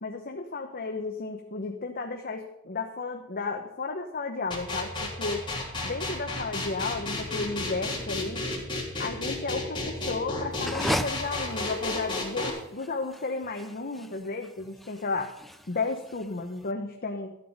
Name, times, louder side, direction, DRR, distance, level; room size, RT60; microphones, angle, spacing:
voice 1, 0.0-5.4 5.8-8.5 9.0-15.3 15.7-17.3, left 3 dB, 40° left, 4 dB, 1.0 m, -33 dB
sound 1, 4.5-12.5, left 2 dB, 20° left, 3.3 m, -32 dB
sound 2, 10.5-16.6, equal, ahead, 0.6 m, -36 dB
12.5 x 8.4 x 5.4 m, 0.89 s
head